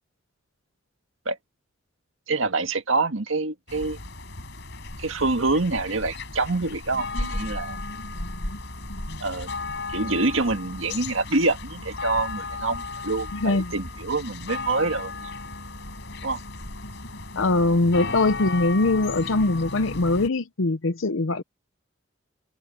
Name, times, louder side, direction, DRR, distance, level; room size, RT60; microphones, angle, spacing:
voice 1, 2.3-4.0 5.0-7.8 9.2-9.5 9.9-15.3 16.2-16.4 17.9-18.1, right 3 dB, 80° right, 1.7 m, -26 dB
sound 1, 3.7-20.3, left 3 dB, 65° left, 5.1 m, -35 dB
voice 2, 13.3-13.7 17.4-21.4, left 2 dB, 80° left, 0.8 m, -22 dB
open air
head